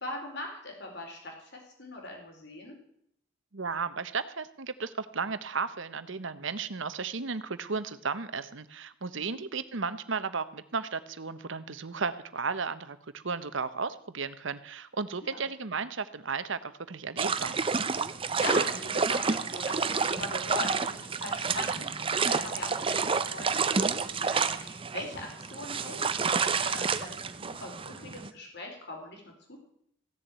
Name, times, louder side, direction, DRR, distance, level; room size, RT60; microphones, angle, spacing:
voice 1, 0.0-2.7 9.3-9.4 15.2-15.4 18.3-29.6, left 1 dB, 55° left, 1 dB, 4.2 m, -41 dB
voice 2, 3.5-17.6, right 5 dB, 65° right, 13 dB, 0.9 m, -34 dB
sound 1, 17.2-28.3, right 5 dB, 25° right, 0.6 m, -29 dB
15.5 x 7.1 x 9.1 m, 0.70 s
head